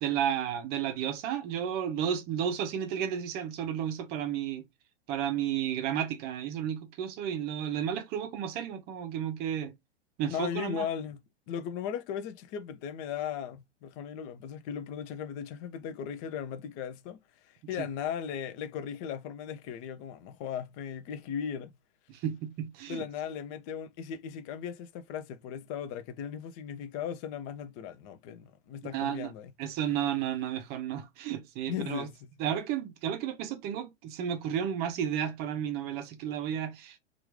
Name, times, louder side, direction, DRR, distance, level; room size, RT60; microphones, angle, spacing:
voice 1, 0.0-4.6 5.1-9.7 10.2-10.9 17.8-17.9 22.1-23.0 28.9-29.3 29.6-32.1 32.4-37.0, right 9 dB, 30° right, 0.7 m, -32 dB
voice 2, 10.3-11.2 11.5-21.7 22.9-29.5 31.7-32.3, left 8 dB, 25° left, 0.4 m, -37 dB
2.9 x 2.4 x 3.4 m
figure-of-eight pair, 100°, 34 cm